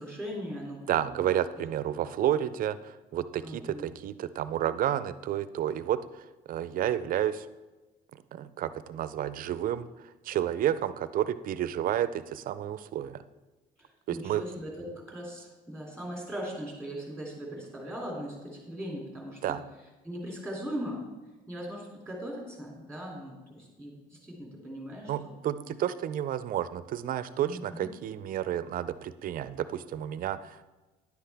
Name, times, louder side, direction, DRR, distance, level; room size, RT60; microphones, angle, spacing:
voice 1, 0.0-1.3 1.9-2.0 3.4-3.9 13.8-19.6 20.0-21.0 21.5-25.8 27.4-27.9, equal, 5° left, -2 dB, 2.8 m, -39 dB
voice 2, 0.9-6.0 6.5-7.5 8.3-9.9 10.2-13.2 14.1-14.4 19.4-19.6 25.1-30.6, right 11 dB, 55° right, 14 dB, 0.5 m, -30 dB
10.0 x 7.7 x 3.5 m, 1.2 s
cardioid pair, 110°, 17 cm